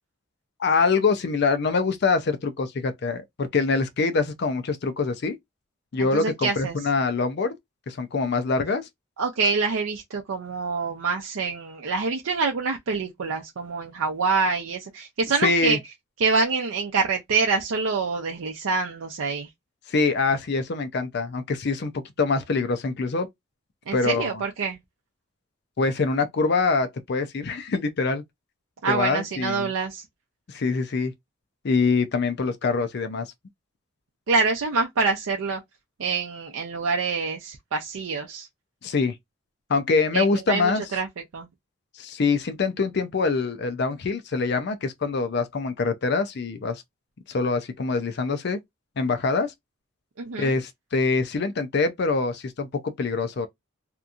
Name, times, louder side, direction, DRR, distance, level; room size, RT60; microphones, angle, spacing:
voice 1, 0.6-5.4 5.9-7.5 7.9-8.9 15.4-15.8 19.9-23.3 23.9-24.4 25.8-28.2 28.9-29.7 30.5-31.1 31.6-33.3 38.8-39.1 39.7-40.8 42.0-46.8 47.3-48.6 49.0-49.5 50.4-53.5, left 4 dB, 55° left, 0.5 m, -24 dB
voice 2, 6.0-6.8 9.2-15.8 16.2-19.5 23.9-24.8 28.8-30.0 34.3-35.6 36.0-38.5 40.1-41.1 41.3-41.5 50.2-50.5, right 4 dB, 85° right, 0.5 m, -26 dB
2.8 x 2.5 x 2.3 m
head